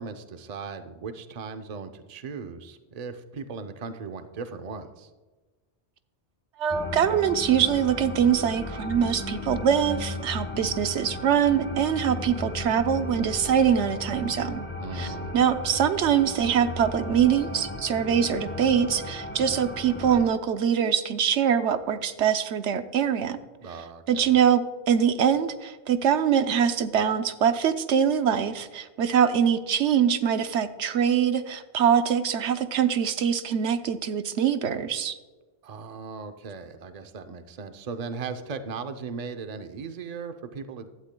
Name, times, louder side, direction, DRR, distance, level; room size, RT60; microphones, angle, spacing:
voice 1, 0.0-5.1 14.8-15.3 23.6-24.4 35.6-40.9, right 5 dB, 40° right, 8 dB, 0.7 m, -37 dB
voice 2, 6.6-14.7 14.9-23.4 24.1-35.2, right 8 dB, 90° right, 9 dB, 1.0 m, -23 dB
sound 1, 6.7-20.2, left 2 dB, 10° left, 1.5 m, -35 dB
16.0 x 11.5 x 2.2 m, 1.2 s
omnidirectional pair, 1.2 m